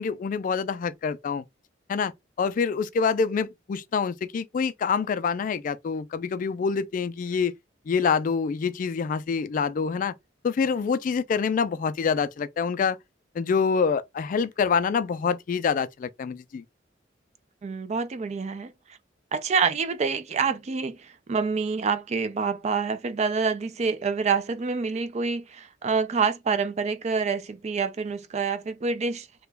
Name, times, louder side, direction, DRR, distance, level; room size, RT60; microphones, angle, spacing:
voice 1, 0.0-1.4 1.9-2.1 2.4-7.5 7.9-10.1 10.4-13.0 13.4-16.6, left 5 dB, 45° left, 0.3 m, -26 dB
voice 2, 17.6-18.7 19.3-29.5, right 5 dB, 35° right, 0.4 m, -27 dB
2.9 x 2.2 x 3.3 m
head